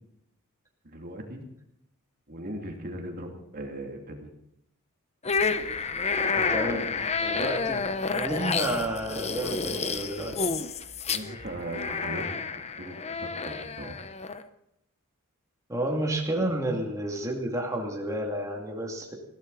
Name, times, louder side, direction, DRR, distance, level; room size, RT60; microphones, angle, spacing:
voice 1, 0.8-1.4 2.3-4.3 11.1-13.9, right 1 dB, 45° right, 2 dB, 2.7 m, -39 dB
sound 1, 5.2-14.4, left 4 dB, 30° left, 0.9 m, -30 dB
voice 2, 6.3-10.5 15.7-19.1, right 1 dB, 15° right, -1 dB, 2.5 m, -31 dB
21.0 x 16.0 x 4.1 m, 0.80 s
head